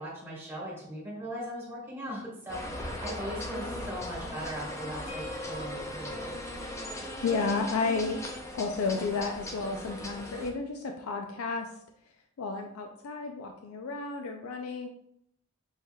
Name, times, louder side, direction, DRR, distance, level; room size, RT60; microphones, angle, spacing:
voice 1, 0.0-6.3, equal, 10° right, -5 dB, 1.5 m, -39 dB
sound 1, 2.5-10.5, left 1 dB, 15° left, 0.4 m, -38 dB
sound 2, 5.1-10.9, left 1 dB, 60° left, 1.3 m, -49 dB
voice 2, 7.2-8.2 8.5-11.7 12.4-14.9, left 4 dB, 85° left, 4 dB, 0.4 m, -32 dB
6.4 x 2.8 x 2.2 m, 0.73 s
head